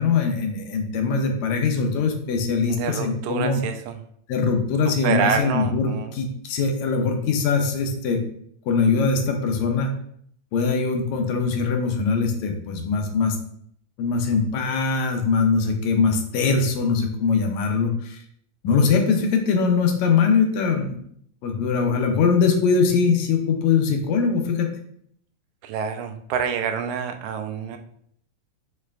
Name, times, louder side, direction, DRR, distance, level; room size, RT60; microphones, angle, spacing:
voice 1, 0.0-3.6 4.3-8.2 8.7-9.9 10.5-13.4 14.0-18.2 18.6-21.0 21.4-24.7, left 5 dB, 80° left, 3 dB, 1.9 m, -22 dB
voice 2, 2.7-4.0 4.9-6.1 25.6-27.8, right 6 dB, 85° right, 6 dB, 2.0 m, -27 dB
6.7 x 3.2 x 2.4 m, 0.66 s
omnidirectional pair, 3.4 m